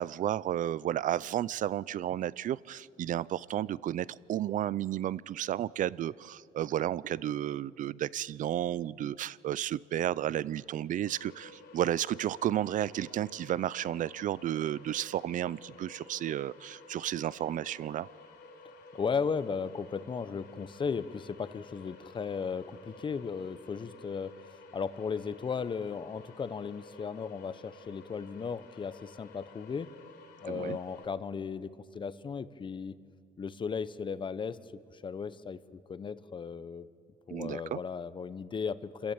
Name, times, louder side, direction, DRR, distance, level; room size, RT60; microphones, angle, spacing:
voice 1, 0.0-18.1 30.5-30.8 37.3-37.8, right 11 dB, 50° right, 21 dB, 0.5 m, -32 dB
sound 1, 11.1-31.1, left 3 dB, 70° left, 4.0 m, -53 dB
voice 2, 18.9-29.9 30.4-33.0 33.4-36.9 37.3-39.1, left 5 dB, 30° left, 15 dB, 0.8 m, -36 dB
27.0 x 14.5 x 8.8 m, 2.4 s
cardioid pair, 110°, 17 cm